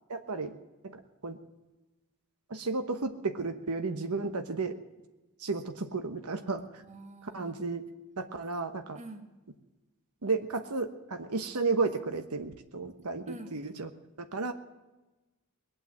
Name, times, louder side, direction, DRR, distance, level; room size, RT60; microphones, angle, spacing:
voice 1, 0.1-0.5 0.8-1.4 2.5-4.8 5.4-6.6 7.3-7.8 8.2-9.0 10.2-13.9 14.2-14.5, right 3 dB, 80° right, 7 dB, 1.1 m, -33 dB
voice 2, 6.8-7.8 8.9-9.3 13.3-13.6, right 2 dB, 30° right, 5 dB, 1.7 m, -46 dB
20.5 x 8.9 x 7.7 m, 1.1 s
head